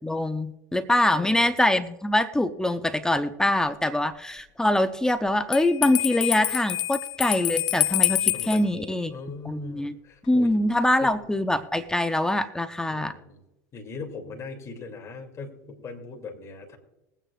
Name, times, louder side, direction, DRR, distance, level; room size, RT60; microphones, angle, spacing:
voice 1, 0.0-9.1 9.4-9.9 10.3-13.1, left 1 dB, 5° left, 9 dB, 0.7 m, -24 dB
voice 2, 1.1-1.5 8.3-10.6 11.0-11.2 12.9-13.4 13.7-16.8, left 4 dB, 35° left, 2 dB, 2.7 m, -40 dB
Bell, 5.5-8.6, left 16 dB, 50° left, 0.4 m, -26 dB
21.0 x 9.0 x 2.5 m, 0.96 s
hypercardioid pair, 90°, 9 cm